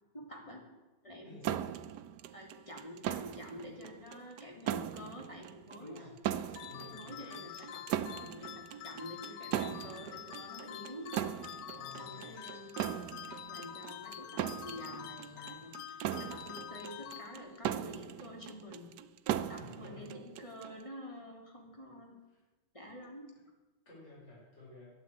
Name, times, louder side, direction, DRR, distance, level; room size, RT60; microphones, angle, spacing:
voice 1, 0.1-0.6 1.0-1.6 2.3-6.0 6.3-6.6 6.9-7.8 8.1-11.1 11.9-12.7 13.4-14.3 14.6-18.9 19.5-22.1 22.7-23.3, equal, 15° left, 0 dB, 3.2 m, -48 dB
sound 1, 1.4-20.8, right 11 dB, 70° right, 1.1 m, -39 dB
voice 2, 5.8-6.2 6.7-7.5 11.7-12.4 19.6-20.1 22.3-22.4 23.9-24.9, left 3 dB, 30° left, -5 dB, 5.8 m, -52 dB
sound 2, 6.6-17.8, left 12 dB, 75° left, 1.5 m, -47 dB
12.0 x 10.5 x 9.0 m, 1.2 s
omnidirectional pair, 2.3 m